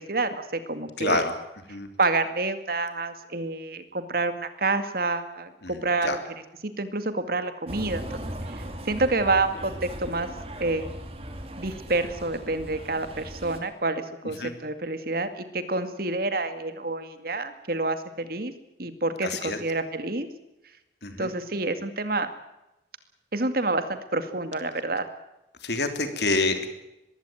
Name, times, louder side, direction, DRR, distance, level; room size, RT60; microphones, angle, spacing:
voice 1, 0.0-1.2 2.0-6.2 6.6-8.0 8.4-10.3 10.6-10.9 11.6-18.5 18.8-20.3 21.2-22.3 23.3-25.1, right 3 dB, 55° right, 10 dB, 2.2 m, -28 dB
voice 2, 1.0-1.3 1.7-1.9 5.6-6.2 14.4-14.5 19.2-19.6 21.0-21.3 25.6-26.7, left 3 dB, 65° left, 7 dB, 3.2 m, -27 dB
sound 1, 7.7-13.6, right 1 dB, 35° right, 2.9 m, -38 dB
21.5 x 16.0 x 9.2 m, 0.92 s
head